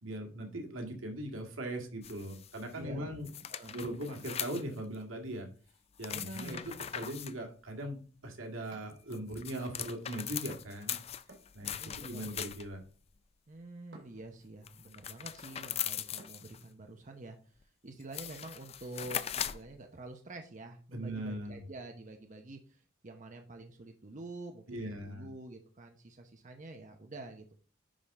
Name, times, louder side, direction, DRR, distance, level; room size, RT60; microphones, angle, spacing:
voice 1, 0.0-3.3 3.7-5.5 6.0-11.0 11.5-12.8 20.9-21.7 24.7-25.3, right 1 dB, 85° right, 2 dB, 2.0 m, -40 dB
sound 1, 2.0-2.6 3.3-5.0 6.0-7.3 8.9-12.8 14.7-16.6 17.6-17.7 18.0-19.7, left 10 dB, 30° left, 0.4 m, -40 dB
voice 2, 2.7-3.2 3.5-3.8 6.1-6.7 11.6-12.3 13.5-27.5, right 2 dB, 40° right, 4 dB, 0.8 m, -48 dB
sound 2, 8.7-9.7 11.3-12.3 13.9-14.5 16.2-16.8, right 2 dB, 65° right, 2.9 m, -58 dB
10.0 x 3.7 x 4.2 m, 0.40 s
head